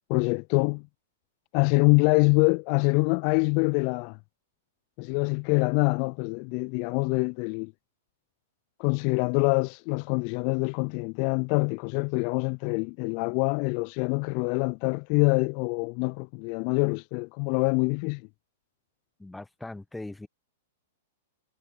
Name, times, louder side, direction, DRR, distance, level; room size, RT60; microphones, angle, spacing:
voice 1, 0.1-0.9 1.5-4.2 5.0-7.7 8.8-18.2, left 37 dB, 45° left, 0.4 m, -25 dB
voice 2, 19.2-20.3, left 2 dB, 5° left, 1.1 m, -40 dB
hypercardioid pair, 105°, 0 cm